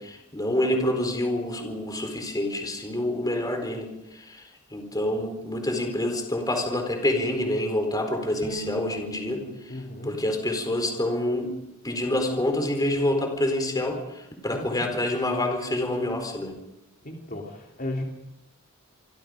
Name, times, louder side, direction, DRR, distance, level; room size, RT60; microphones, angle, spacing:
voice 1, 0.0-9.8 10.0-11.6 11.8-16.6, left 1 dB, 20° left, 5 dB, 4.3 m, -27 dB
Bowed string instrument, 8.4-11.6, equal, 10° right, 7.0 m, -43 dB
voice 2, 9.7-10.2 14.5-14.9 17.0-18.0, left 1 dB, 40° left, 0 dB, 3.2 m, -35 dB
27.5 x 24.5 x 5.2 m, 0.88 s
head